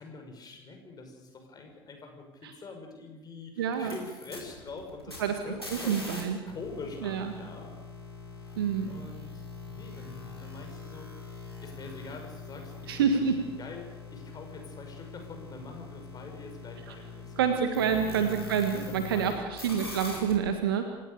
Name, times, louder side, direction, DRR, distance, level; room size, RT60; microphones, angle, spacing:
voice 1, 0.0-7.7 8.4-17.5 17.8-18.4 18.8-19.5, left 3 dB, 30° left, 4 dB, 6.1 m, -45 dB
voice 2, 3.6-3.9 5.2-5.3 5.9-6.4 7.0-7.3 8.6-8.9 12.9-13.4 17.4-21.0, right 7 dB, 70° right, 7 dB, 1.7 m, -27 dB
sound 1, 3.7-6.2 6.5-19.3 19.6-20.3, left 3 dB, 90° left, 5.0 m, -43 dB
28.0 x 17.0 x 6.8 m, 1.1 s
figure-of-eight pair, 65°, 13 cm